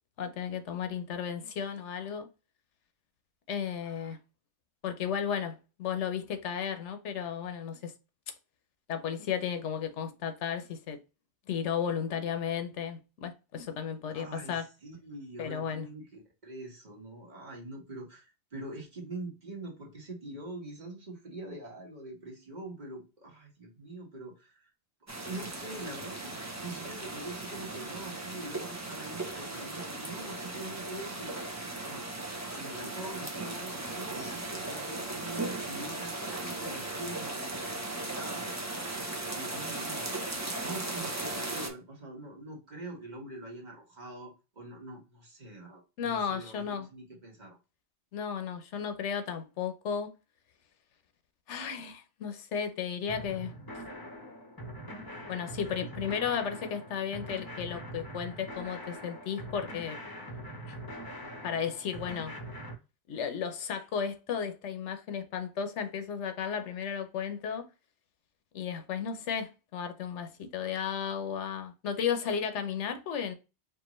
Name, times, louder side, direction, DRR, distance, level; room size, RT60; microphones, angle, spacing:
voice 1, 0.2-2.3 3.5-4.2 4.8-7.9 8.9-11.0 11.5-14.7 15.4-15.9 46.0-46.9 48.1-50.1 51.5-53.5 55.3-60.0 60.3-60.7 61.4-62.3 63.1-67.7 68.5-73.3, left 7 dB, 80° left, 1.0 m, -34 dB
voice 2, 3.8-4.2 14.1-24.5 25.2-31.4 31.8-32.0 32.5-37.3 38.0-38.5 39.3-40.1 40.6-47.6, right 2 dB, 40° right, 1.3 m, -44 dB
sound 1, 25.1-41.7, right 2 dB, 20° right, 0.5 m, -37 dB
sound 2, 53.1-62.7, equal, 25° left, 0.7 m, -43 dB
4.6 x 2.5 x 3.0 m
omnidirectional pair, 1.2 m